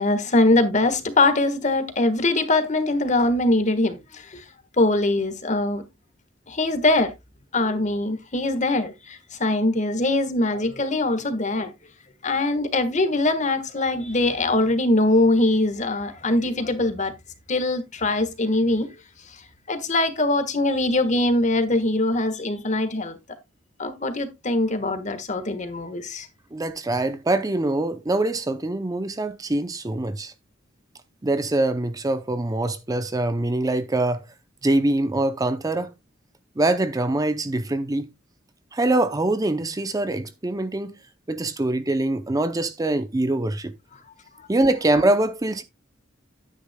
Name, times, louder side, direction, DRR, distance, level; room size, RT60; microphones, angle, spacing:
voice 1, 0.0-4.4 4.8-5.8 6.5-7.1 7.5-11.7 12.2-17.1 17.5-18.9 19.7-23.2 23.8-26.3, left 2 dB, 40° left, 1.4 m, -22 dB
voice 2, 26.5-30.3 31.2-34.2 34.6-35.9 36.6-38.1 38.7-41.0 41.3-43.7 44.5-45.6, right 2 dB, 20° right, 0.5 m, -24 dB
11.0 x 9.5 x 2.2 m
head